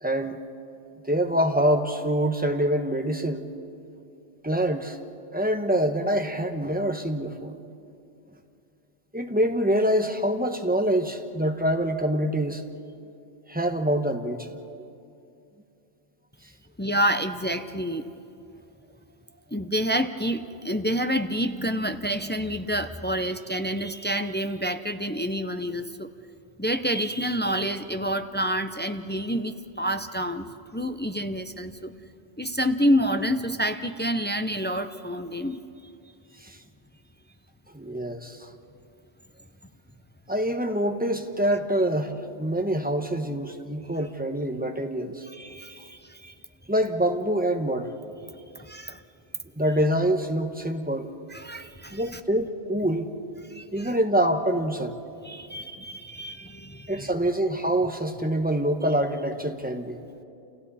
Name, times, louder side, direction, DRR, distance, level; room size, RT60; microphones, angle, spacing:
voice 1, 0.0-0.4 1.0-3.5 4.4-5.0 5.3-7.6 9.1-12.6 13.5-14.6 36.4-36.6 37.7-38.5 40.3-45.2 46.7-47.9 49.5-51.1 51.9-53.1 53.7-55.0 56.9-60.0, right 1 dB, 10° right, 4 dB, 1.2 m, -25 dB
voice 2, 16.8-18.1 19.5-26.1 26.6-30.5 30.7-31.9 32.4-35.6 45.3-46.3 48.6-49.0 51.3-52.2 53.5-53.9 55.2-57.1, equal, 10° left, 8 dB, 0.5 m, -28 dB
29.5 x 29.0 x 4.2 m, 2.6 s
omnidirectional pair, 1.1 m